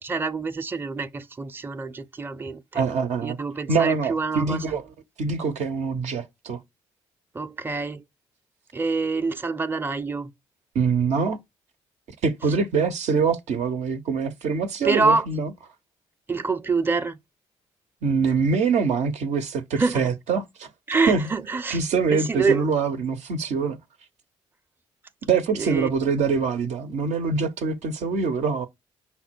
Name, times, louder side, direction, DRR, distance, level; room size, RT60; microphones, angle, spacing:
voice 1, 0.0-2.8 3.2-4.8 7.3-8.0 8.7-10.3 14.8-15.3 16.3-17.2 19.8-20.1 20.9-21.8 22.1-22.7 25.5-25.9, right 4 dB, 15° right, 0.5 m, -26 dB
voice 2, 2.7-3.4 3.7-4.8 5.2-6.6 10.7-11.4 12.2-15.5 18.0-20.7 21.1-21.2 21.7-23.8 25.2-28.7, right 5 dB, 70° right, 0.6 m, -24 dB
5.5 x 2.1 x 4.3 m
hypercardioid pair, 50°, 12 cm